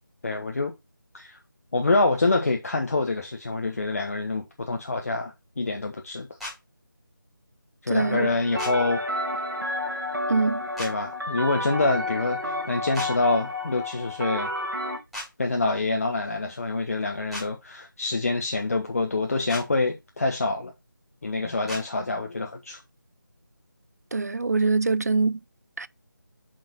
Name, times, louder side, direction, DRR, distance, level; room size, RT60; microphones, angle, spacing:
voice 1, 0.2-0.7 1.1-1.4 1.7-6.3 7.8-9.0 10.8-14.5 15.4-20.7 21.2-22.8, left 3 dB, 45° left, 1.1 m, -26 dB
sound 1, 6.4-6.5 8.6-8.7 10.8-10.9 12.9-13.1 15.1-15.3 17.3-17.5 19.5-19.6 21.7-21.8, left 1 dB, ahead, 2.0 m, -35 dB
voice 2, 7.9-8.3 10.3-10.6 24.1-25.4 25.8-25.9, right 3 dB, 50° right, 0.4 m, -23 dB
sound 2, 8.0-15.0, left 1 dB, 85° right, 2.6 m, -31 dB
5.9 x 5.1 x 4.7 m
figure-of-eight pair, 165°, 11 cm